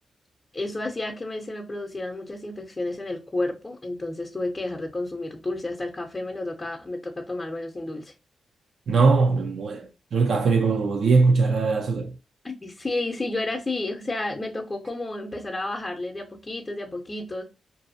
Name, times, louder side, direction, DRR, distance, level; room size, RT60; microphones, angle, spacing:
voice 1, 0.5-8.1 12.4-17.4, left 2 dB, 25° left, 0.7 m, -31 dB
voice 2, 8.9-12.1, right 4 dB, 70° right, 0.4 m, -21 dB
2.6 x 2.4 x 2.6 m
cardioid pair, 65°, 0 cm